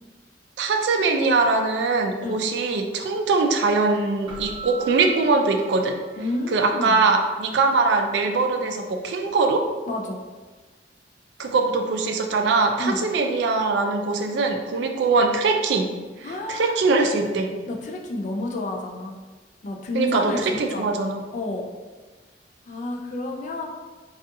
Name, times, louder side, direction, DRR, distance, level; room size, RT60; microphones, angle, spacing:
voice 1, 0.6-6.0 6.5-9.6 11.4-15.9 16.2-17.5 19.9-21.2, right 3 dB, 65° right, 4 dB, 0.3 m, -22 dB
Keyboard (musical), 4.3-6.7, right 3 dB, 25° right, 0.6 m, -39 dB
voice 2, 6.2-7.0 9.9-10.2 12.8-13.0 16.2-16.8 17.7-19.2 19.6-20.9 21.3-21.7 22.7-23.6, left 2 dB, 40° left, 1 dB, 0.3 m, -30 dB
2.6 x 2.3 x 2.5 m, 1.4 s
head